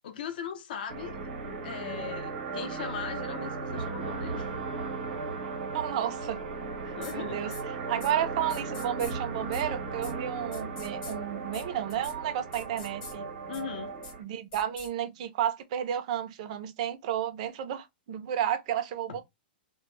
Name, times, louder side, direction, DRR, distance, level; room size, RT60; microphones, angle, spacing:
voice 1, 0.0-1.2 1.6-4.5 7.0-7.4 13.5-13.9 19.1-19.2, left 8 dB, 60° left, 0.5 m, -39 dB
sound 1, 0.9-14.2, right 4 dB, 85° right, 0.8 m, -36 dB
voice 2, 5.7-6.4 7.1-7.6 7.9-13.3 14.2-19.2, right 10 dB, 40° right, 0.4 m, -32 dB
sound 2, 7.0-7.1 7.5-7.6 8.0-8.1 8.5-9.1 9.5-9.6 10.0-10.1 10.5-11.1 11.5-11.6 11.9-12.1 12.5-13.1 13.5-13.6 14.0-14.1 14.5-14.9, left 4 dB, 20° left, 0.7 m, -44 dB
2.1 x 2.0 x 3.1 m
hypercardioid pair, 170°, 6 cm